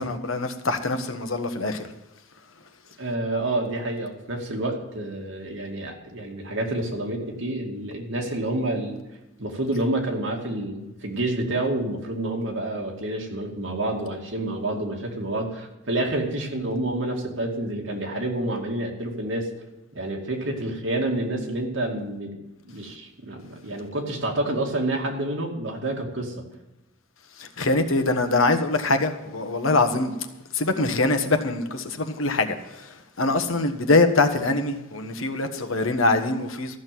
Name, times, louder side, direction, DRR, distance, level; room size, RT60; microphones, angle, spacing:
voice 1, 0.0-1.8 27.4-30.1 30.5-36.8, left 2 dB, 85° left, 1.3 m, -23 dB
voice 2, 3.0-9.0 9.4-19.5 19.9-22.4 22.7-26.5, right 1 dB, 70° right, 2.4 m, -28 dB
14.0 x 6.5 x 9.2 m
head